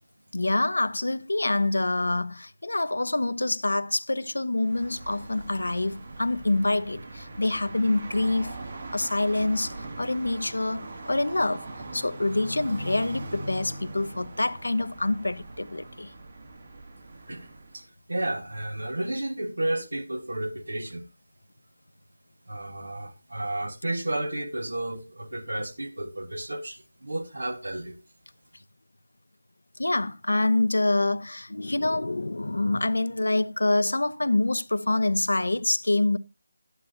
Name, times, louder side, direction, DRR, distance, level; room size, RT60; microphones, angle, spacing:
voice 1, 0.3-8.5 8.9-11.7 11.9-16.1 29.8-36.2, left 2 dB, 85° left, 0.7 m, -26 dB
sound 1, 4.5-17.8, right 2 dB, 50° right, 2.4 m, -41 dB
voice 2, 17.7-21.1 22.5-28.0, right 1 dB, 85° right, 1.9 m, -32 dB
11.5 x 9.9 x 2.9 m
figure-of-eight pair, 165°, 0 cm